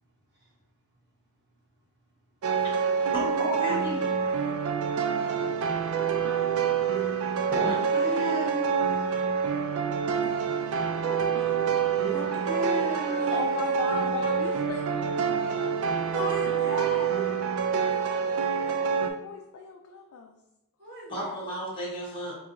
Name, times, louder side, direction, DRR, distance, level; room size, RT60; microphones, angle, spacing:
sound 1, 2.4-19.1, right 6 dB, 65° right, 0.4 m, -27 dB
voice 1, 3.1-4.0 7.5-8.9 11.9-13.4 18.6-18.7 21.1-22.3, equal, 25° left, -5 dB, 1.3 m, -33 dB
voice 2, 11.0-11.5 16.1-17.3 20.8-21.4, left 1 dB, 50° right, -5 dB, 1.3 m, -35 dB
voice 3, 13.0-16.1 18.7-20.4, left 5 dB, 70° left, 2 dB, 0.4 m, -37 dB
4.6 x 2.7 x 2.6 m, 0.92 s
head